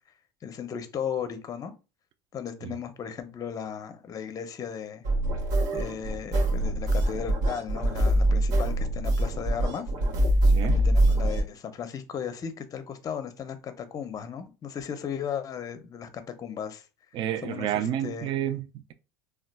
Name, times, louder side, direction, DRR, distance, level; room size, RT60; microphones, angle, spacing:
voice 1, 0.4-1.7 2.3-5.0 5.7-9.9 10.6-16.8 17.4-18.3, left 8 dB, 35° left, 0.5 m, -36 dB
sound 1, 5.0-11.4, right 1 dB, 75° right, 0.9 m, -24 dB
voice 2, 10.4-10.8 17.1-18.9, right 11 dB, 45° right, 0.4 m, -30 dB
3.9 x 2.2 x 2.2 m
supercardioid pair, 95°, 11 cm